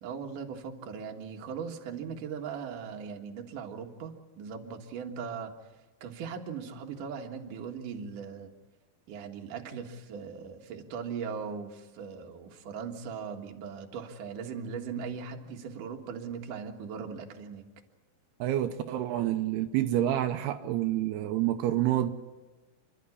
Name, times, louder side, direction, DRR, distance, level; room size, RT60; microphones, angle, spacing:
voice 1, 0.0-5.5 6.0-8.5 9.1-17.6, right 6 dB, 60° right, 3.0 m, -39 dB
voice 2, 18.4-22.1, right 12 dB, 85° right, 2.9 m, -28 dB
29.5 x 12.5 x 9.8 m
omnidirectional pair, 4.5 m